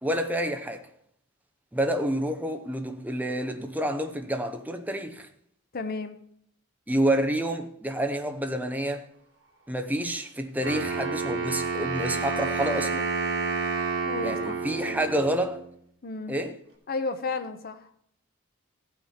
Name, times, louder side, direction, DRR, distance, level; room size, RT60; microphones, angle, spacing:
voice 1, 0.0-0.8 1.7-5.3 6.9-9.0 9.7-13.1 14.2-15.6 16.3-16.5, right 1 dB, 10° right, 0.7 m, -28 dB
voice 2, 5.7-6.2 14.0-15.1 16.0-16.4 16.9-17.9, left 3 dB, 45° left, 0.7 m, -33 dB
Wind instrument woodwind instrument, 10.6-15.6, right 4 dB, 80° right, 2.6 m, -29 dB
15.0 x 5.8 x 4.3 m
head